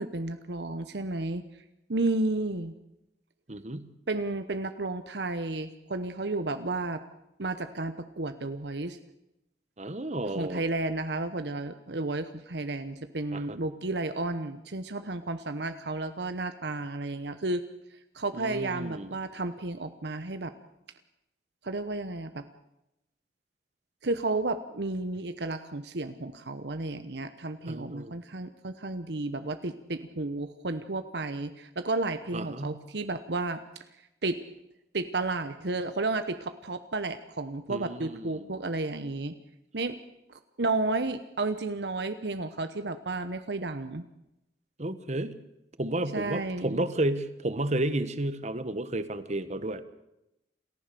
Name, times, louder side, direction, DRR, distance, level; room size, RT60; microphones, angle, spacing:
voice 1, 0.0-1.4 1.9-2.7 4.1-7.0 7.4-9.0 10.2-17.6 18.1-20.5 21.6-22.4 24.0-33.6 34.2-34.4 34.9-39.3 39.7-40.0 40.6-44.0 46.1-46.9, right 2 dB, 65° right, 10 dB, 1.0 m, -32 dB
voice 2, 3.5-3.9 9.8-10.6 13.3-13.6 18.3-19.1 27.7-28.2 32.3-32.8 37.7-38.4 44.8-45.4 45.8-49.8, right 1 dB, 40° right, 13 dB, 1.3 m, -32 dB
28.0 x 15.0 x 6.9 m, 0.88 s
head